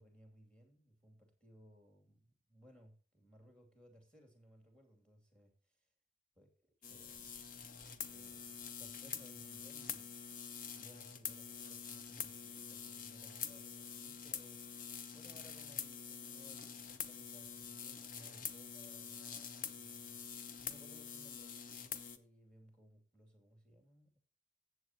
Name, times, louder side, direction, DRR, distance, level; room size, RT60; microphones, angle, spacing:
voice 1, 0.0-5.9 6.4-7.4 8.1-10.1 10.7-24.2, equal, 5° left, 2.6 m, -63 dB
sound 1, 6.8-22.2, left 7 dB, 45° left, 0.8 m, -46 dB
14.0 x 8.0 x 2.9 m
head